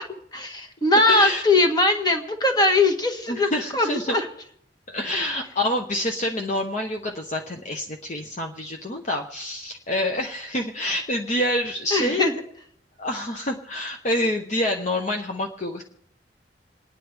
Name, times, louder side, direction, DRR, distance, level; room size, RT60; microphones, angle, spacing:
voice 1, 0.3-4.3 11.9-12.3, left 2 dB, 25° left, 4 dB, 1.5 m, -21 dB
voice 2, 1.1-1.4 3.3-4.2 4.9-12.3 13.0-15.8, left 1 dB, 40° left, 2 dB, 0.9 m, -27 dB
28.5 x 9.7 x 3.4 m, 0.71 s
head